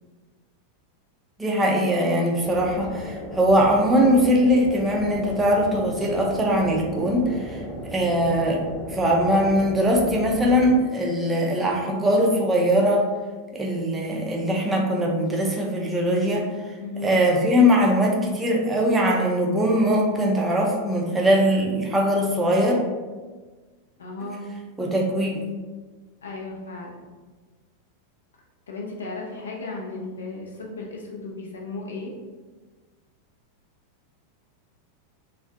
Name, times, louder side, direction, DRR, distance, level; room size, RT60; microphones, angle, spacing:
voice 1, 1.4-7.6 7.9-8.6 8.9-13.1 13.5-16.5 17.0-22.8 24.8-25.4, equal, 10° right, -2 dB, 0.4 m, -21 dB
sound 1, 2.4-10.7, equal, 10° left, 0.9 m, -36 dB
voice 2, 16.8-17.1 24.0-24.5 26.2-27.0 28.7-32.1, left 3 dB, 65° left, -2 dB, 0.5 m, -35 dB
2.4 x 2.1 x 2.4 m, 1.3 s
figure-of-eight pair, 90°, 0 cm